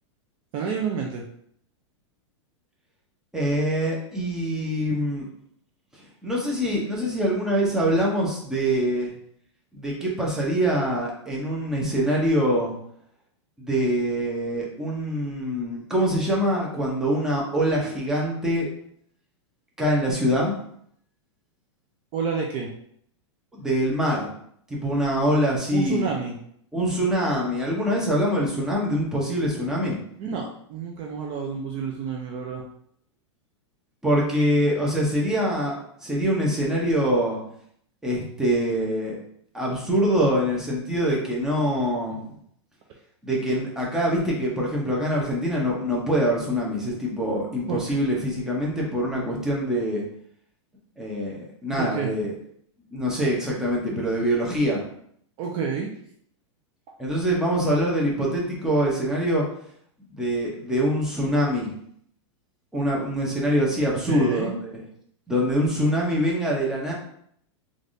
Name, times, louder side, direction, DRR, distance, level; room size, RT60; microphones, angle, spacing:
voice 1, 0.5-1.3 22.1-22.7 25.7-26.4 30.2-32.6 47.7-47.8 51.7-52.1 55.4-55.9 64.1-64.5, right 5 dB, 35° right, 0 dB, 0.4 m, -29 dB
voice 2, 3.3-5.2 6.2-9.1 9.7-12.7 13.6-18.7 19.8-20.5 23.5-24.3 24.7-26.2 26.7-30.0 34.0-35.7 36.0-37.4 38.0-39.2 39.5-42.2 43.2-50.0 51.0-52.3 52.9-54.8 57.0-59.4 60.1-61.7 62.7-64.7 65.3-66.9, equal, 5° right, -4 dB, 0.7 m, -24 dB
3.2 x 2.5 x 2.6 m, 0.67 s
hypercardioid pair, 135°, 16 cm